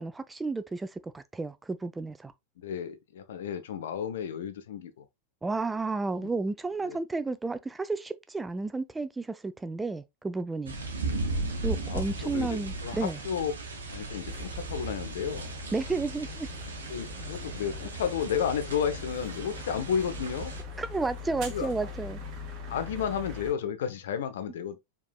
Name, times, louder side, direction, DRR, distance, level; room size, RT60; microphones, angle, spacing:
voice 1, 0.0-2.3 5.4-10.7 11.6-13.2 15.7-16.5 20.8-22.2, right 3 dB, 10° right, 0.4 m, -32 dB
voice 2, 2.6-5.1 6.1-6.3 6.8-7.0 11.9-13.5 13.9-15.5 16.9-20.5 21.5-21.7 22.7-24.8, left 8 dB, 60° left, 0.6 m, -32 dB
sound 1, 10.7-20.6, right 2 dB, 70° right, 1.0 m, -36 dB
sound 2, 14.3-23.5, left 3 dB, 40° right, 1.1 m, -42 dB
4.6 x 3.7 x 2.3 m
figure-of-eight pair, 90°, 0 cm